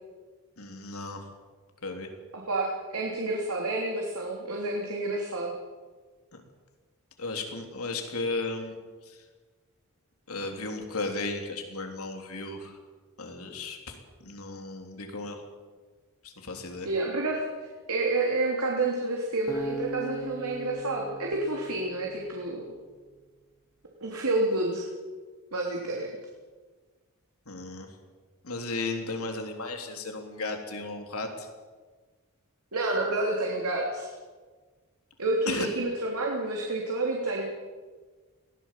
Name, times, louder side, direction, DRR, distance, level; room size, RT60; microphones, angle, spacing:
voice 1, 0.6-1.3 1.8-2.1 6.3-6.4 7.2-8.7 9.1-9.2 10.3-12.8 13.2-14.0 14.2-15.4 16.2-16.9 27.5-27.9 28.4-31.5 35.5-35.7, left 3 dB, 80° left, 4 dB, 3.5 m, -35 dB
voice 2, 2.3-5.5 16.8-17.4 17.9-22.7 24.0-24.8 25.5-26.1 32.7-34.1 35.2-37.5, right 2 dB, 90° right, -1 dB, 3.4 m, -29 dB
Acoustic guitar, 19.5-22.7, right 1 dB, 15° left, 2.1 m, -39 dB
21.5 x 17.0 x 7.6 m, 1.4 s
head